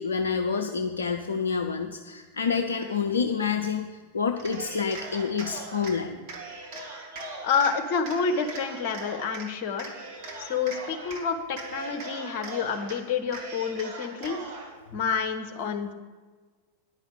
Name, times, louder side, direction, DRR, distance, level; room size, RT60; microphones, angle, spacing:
voice 1, 0.0-6.2 10.2-11.2, left 5 dB, 70° left, 5 dB, 0.5 m, -29 dB
Cheering, 4.3-5.9 6.3-7.7 8.0-9.5 9.8-11.2 11.5-13.0 13.3-14.7, right 2 dB, 45° right, 2.2 m, -40 dB
voice 2, 7.4-9.9 10.4-14.4 14.9-15.9, left 6 dB, 45° left, 6 dB, 1.1 m, -28 dB
9.9 x 5.7 x 8.5 m, 1.4 s
figure-of-eight pair, 90°, 0 cm